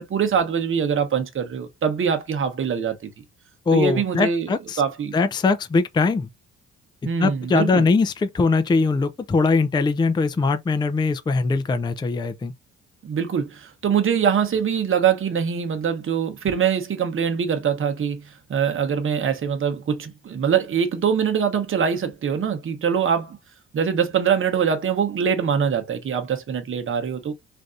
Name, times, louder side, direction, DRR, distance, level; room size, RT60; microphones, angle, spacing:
voice 1, 0.0-3.1 3.7-4.5 4.8-5.1 7.0-7.9 13.0-18.2 18.5-23.4 23.7-27.3, right 7 dB, 45° right, 0.9 m, -23 dB
voice 2, 3.7-4.8 5.1-6.3 7.2-12.5, left 4 dB, 15° left, 0.4 m, -21 dB
3.3 x 2.6 x 2.4 m
cardioid pair, 90°, 30 cm